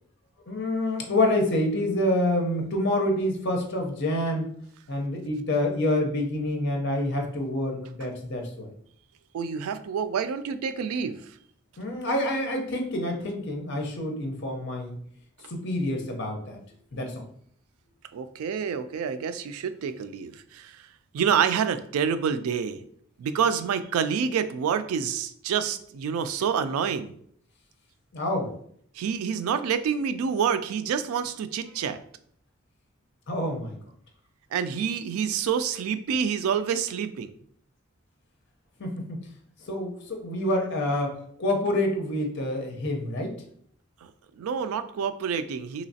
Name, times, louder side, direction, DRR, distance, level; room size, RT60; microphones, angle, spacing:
voice 1, 0.5-4.5 4.9-8.7 11.8-15.0 15.5-16.6 16.9-17.2 28.1-28.5 33.3-33.8 38.8-39.2 39.7-43.3, left 1 dB, 55° left, 2 dB, 0.7 m, -27 dB
voice 2, 9.3-11.2 18.1-20.9 21.1-22.8 23.2-27.2 29.0-32.0 34.5-37.3 44.4-45.8, right 7 dB, 90° right, 12 dB, 0.3 m, -27 dB
3.1 x 2.9 x 2.7 m, 0.64 s
head